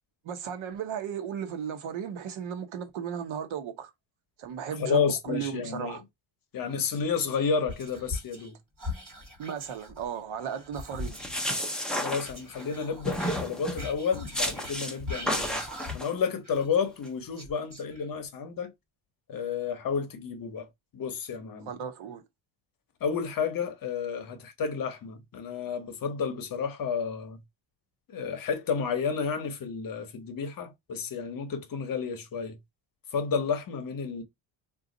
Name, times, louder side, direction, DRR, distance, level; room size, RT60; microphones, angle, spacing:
voice 1, 0.2-3.9 4.4-6.0 9.4-11.2 21.7-22.2, right 8 dB, 70° right, 1.0 m, -35 dB
voice 2, 4.8-6.0 6.5-8.6 12.0-15.7 15.9-18.7 19.3-20.7 20.9-21.7 23.0-27.4 28.1-32.6 33.1-34.2, left 6 dB, 45° left, 0.8 m, -31 dB
Whispering, 6.9-8.5 8.8-11.4 12.2-16.2 16.4-18.3, left 2 dB, 40° right, 2.9 m, -41 dB
sound 1, 11.0-12.7 13.1-13.9 14.3-14.9 15.3-16.1, equal, ahead, 0.4 m, -31 dB
4.0 x 2.5 x 3.8 m
cardioid pair, 170°, 49 cm